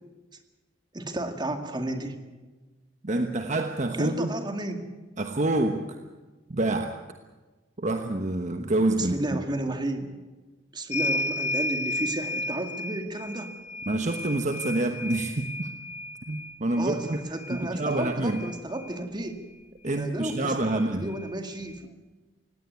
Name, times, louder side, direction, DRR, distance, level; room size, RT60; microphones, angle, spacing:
voice 1, 0.9-2.2 4.0-4.9 9.0-10.1 10.7-13.5 16.8-19.4 20.0-21.9, right 1 dB, 25° right, 6 dB, 2.1 m, -33 dB
voice 2, 3.0-4.3 5.2-6.0 6.5-7.0 7.8-9.1 13.9-15.7 16.3-17.2 17.5-18.4 19.8-21.1, right 2 dB, 40° right, 5 dB, 1.2 m, -27 dB
sound 1, 10.9-19.0 20.3-20.4 20.7-21.8, left 1 dB, 35° left, 0.9 m, -34 dB
19.0 x 17.0 x 9.6 m, 1.2 s
head